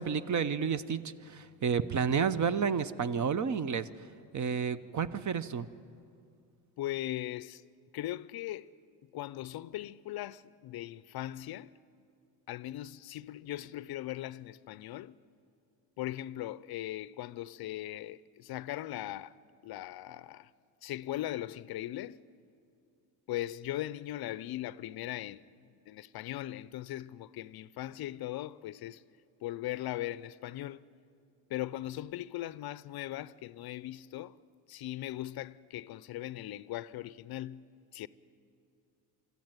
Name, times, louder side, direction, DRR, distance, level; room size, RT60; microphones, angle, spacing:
voice 1, 0.0-3.9 4.3-5.7, right 6 dB, 40° right, 0.8 m, -31 dB
voice 2, 6.8-7.6 7.9-8.7 9.1-11.7 12.5-15.2 16.0-19.4 19.6-20.5 20.8-22.2 23.3-25.5 25.9-29.0 29.4-30.8 31.5-34.4 34.7-38.1, left 14 dB, 50° left, 0.6 m, -39 dB
24.5 x 14.0 x 9.1 m
supercardioid pair, 80°, 48 cm